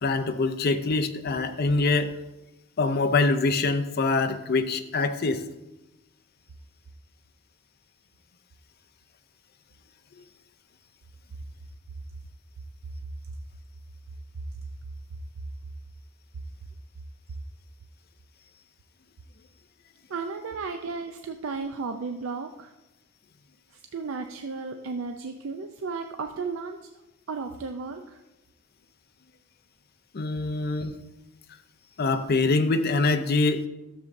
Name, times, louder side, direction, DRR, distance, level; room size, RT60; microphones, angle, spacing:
voice 1, 0.0-2.1 2.8-5.4 30.1-31.0 32.0-33.7, left 3 dB, 50° left, 9 dB, 0.5 m, -24 dB
voice 2, 20.1-22.7 23.7-26.9 27.3-28.2, right 4 dB, 80° right, 5 dB, 0.5 m, -34 dB
12.5 x 7.1 x 2.6 m, 1.0 s
head